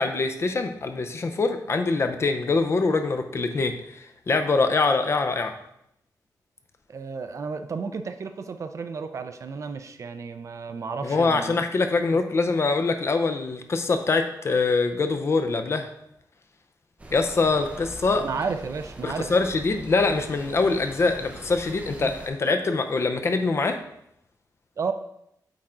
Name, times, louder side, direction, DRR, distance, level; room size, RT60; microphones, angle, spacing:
voice 1, 0.0-3.7 4.3-5.5 11.0-15.9 17.1-18.3 19.0-23.8, left 3 dB, 40° left, 6 dB, 0.6 m, -24 dB
voice 2, 6.9-11.6 12.1-12.2 18.2-19.3 22.0-22.1 24.8-24.9, right 5 dB, 50° right, 8 dB, 0.5 m, -32 dB
sound 1, 17.0-22.3, right 1 dB, 20° right, 0.8 m, -43 dB
8.7 x 3.6 x 3.8 m, 0.77 s
wide cardioid pair, 175°, 7 cm